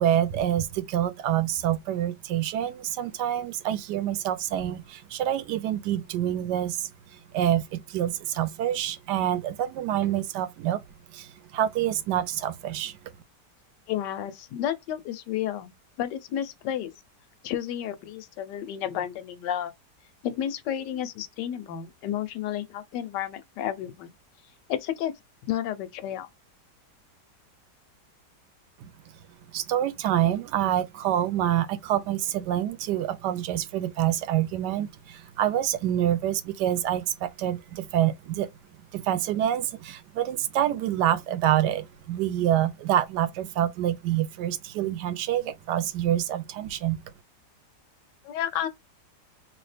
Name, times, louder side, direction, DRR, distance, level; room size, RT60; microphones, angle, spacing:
voice 1, 0.0-6.9 7.3-10.8 11.1-13.0 28.8-28.9 29.5-38.5 38.9-47.0, right 11 dB, 80° right, 1.2 m, -27 dB
voice 2, 13.9-15.7 16.0-16.9 17.4-19.7 20.2-24.1 24.7-25.1 25.5-26.3 48.2-48.7, left 10 dB, 85° left, 1.3 m, -31 dB
3.0 x 2.8 x 3.2 m
omnidirectional pair, 1.8 m